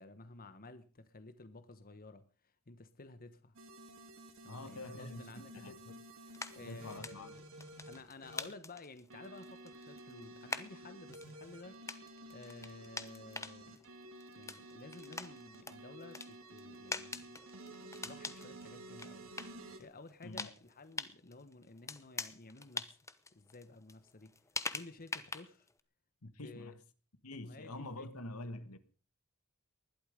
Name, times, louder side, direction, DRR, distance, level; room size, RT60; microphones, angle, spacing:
voice 1, 0.0-3.6 4.4-7.4 7.8-11.8 12.3-13.8 14.3-17.4 18.0-19.3 19.8-23.0 23.3-24.3 24.7-25.7 26.4-26.8 27.4-28.1, left 2 dB, 40° left, 1.2 m, -53 dB
sound 1, 3.6-8.5 9.1-19.8, right 1 dB, 65° right, 2.9 m, -52 dB
voice 2, 4.5-6.0 6.7-7.4 20.2-20.5 26.2-26.8 27.2-28.8, left 2 dB, 80° left, 1.6 m, -46 dB
sound 2, 6.3-25.8, left 3 dB, 15° left, 0.9 m, -45 dB
20.0 x 12.0 x 5.1 m
head